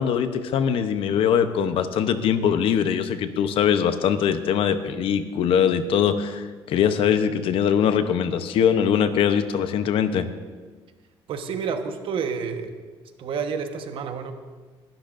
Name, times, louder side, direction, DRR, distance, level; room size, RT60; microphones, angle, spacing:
voice 1, 0.0-10.3, left 8 dB, 65° left, 10 dB, 0.9 m, -22 dB
voice 2, 11.3-12.8 13.2-14.3, right 6 dB, 60° right, 6 dB, 1.2 m, -29 dB
20.5 x 12.0 x 2.6 m, 1.4 s
cardioid pair, 100°, 10 cm